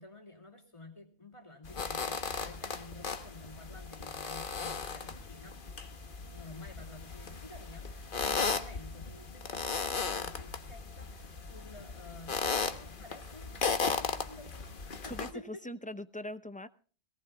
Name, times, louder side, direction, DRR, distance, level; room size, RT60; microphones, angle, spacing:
voice 1, 0.0-5.6 6.3-15.6, left 2 dB, 30° left, 1 dB, 2.8 m, -51 dB
sound 1, 1.6-15.3, left 5 dB, 55° left, 1.3 m, -36 dB
voice 2, 15.0-16.7, left 1 dB, 10° left, 11 dB, 0.6 m, -41 dB
22.0 x 18.0 x 2.3 m, 0.40 s
omnidirectional pair, 1.1 m